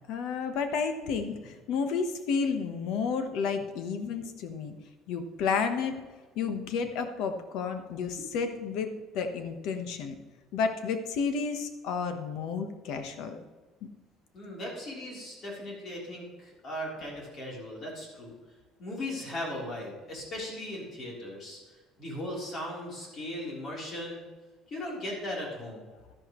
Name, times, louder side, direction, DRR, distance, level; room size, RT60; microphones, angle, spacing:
voice 1, 0.1-4.7 5.1-6.0 6.3-10.2 10.5-13.4 13.8-13.9, left 5 dB, 65° left, 7 dB, 1.2 m, -31 dB
voice 2, 14.3-18.3 18.8-21.6 22.0-24.2 24.7-25.8, left 1 dB, 35° left, -3 dB, 3.6 m, -38 dB
12.5 x 11.0 x 3.1 m, 1.3 s
cardioid pair, 155°, 0 cm